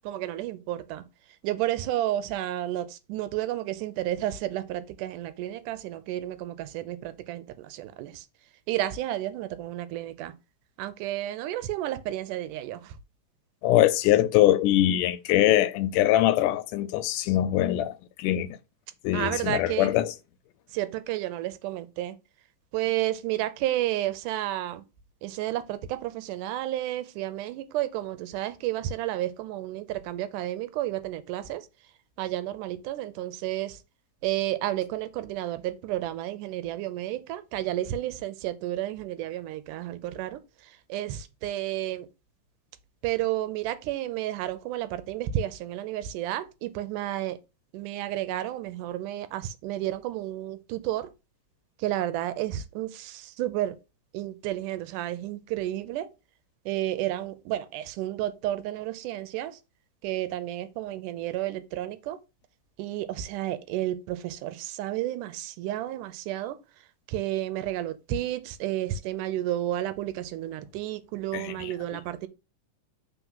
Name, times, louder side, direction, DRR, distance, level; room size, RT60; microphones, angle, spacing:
voice 1, 0.1-1.0 1.4-8.2 8.7-10.3 10.8-12.8 19.1-19.9 20.7-22.1 22.7-24.8 25.2-31.6 32.2-33.8 34.2-40.4 40.9-42.1 43.0-47.4 47.7-51.1 51.8-53.8 54.1-56.1 56.7-59.5 60.0-62.2 62.8-66.6 67.1-72.3, right 13 dB, 85° right, 2.1 m, -31 dB
voice 2, 13.6-18.6 19.0-20.2 71.3-72.0, left 13 dB, 85° left, 2.1 m, -23 dB
4.6 x 3.9 x 5.4 m
omnidirectional pair, 3.7 m